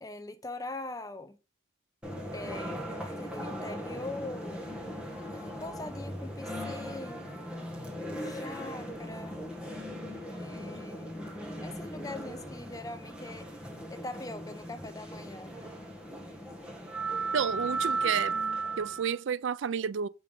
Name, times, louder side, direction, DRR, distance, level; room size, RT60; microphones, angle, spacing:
voice 1, 0.0-1.4 2.3-4.6 5.3-7.7 8.1-9.3 10.3-11.2 11.6-13.5 13.9-15.6, left 2 dB, 15° left, 0.8 m, -42 dB
sound 1, 2.0-19.2, right 2 dB, 5° right, 1.7 m, -37 dB
voice 2, 17.3-18.4 18.8-20.1, right 7 dB, 70° right, 0.4 m, -30 dB
7.5 x 5.5 x 5.3 m
head